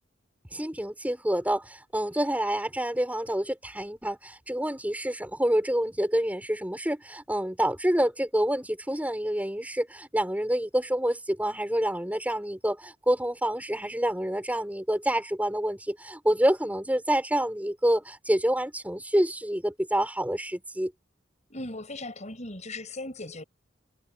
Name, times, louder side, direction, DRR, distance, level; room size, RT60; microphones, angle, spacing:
voice 1, 0.5-20.9, right 1 dB, 10° right, 6.2 m, -27 dB
voice 2, 21.5-23.4, left 2 dB, 35° left, 7.6 m, -38 dB
head